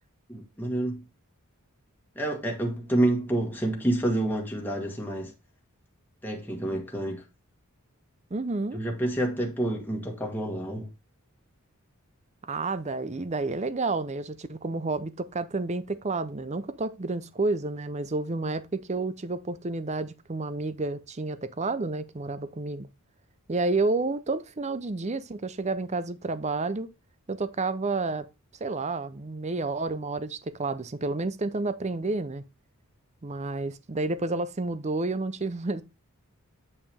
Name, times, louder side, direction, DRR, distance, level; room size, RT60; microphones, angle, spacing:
voice 1, 0.3-1.0 2.1-5.3 6.2-7.2 8.7-10.9, right 1 dB, 10° left, 1.5 m, -28 dB
voice 2, 8.3-8.8 12.4-22.9 23.5-26.9 27.3-28.3 28.6-32.4 33.2-35.8, right 3 dB, 30° right, 0.6 m, -30 dB
8.6 x 5.6 x 3.4 m
head